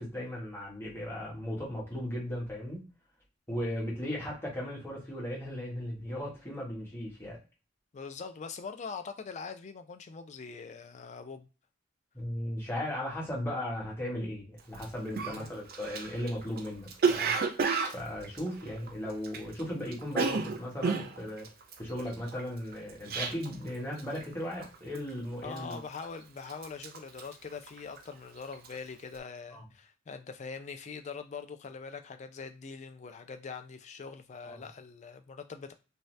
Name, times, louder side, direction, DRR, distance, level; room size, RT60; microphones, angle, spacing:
voice 1, 0.0-2.8 3.5-7.4 12.1-17.3 17.9-21.5 21.8-25.8 29.5-29.6 34.4-34.6, equal, 15° left, -3 dB, 1.2 m, -37 dB
voice 2, 7.9-11.5 15.2-15.5 23.5-23.6 25.4-35.7, left 5 dB, 35° left, 8 dB, 0.4 m, -43 dB
Cough, 14.7-14.8 15.2-19.6 19.9-23.7 24.0-24.3 24.6-25.1 25.6-26.2 26.5-28.1 28.4-28.8, right 5 dB, 50° right, 0.4 m, -32 dB
2.7 x 2.2 x 3.1 m, 0.32 s
head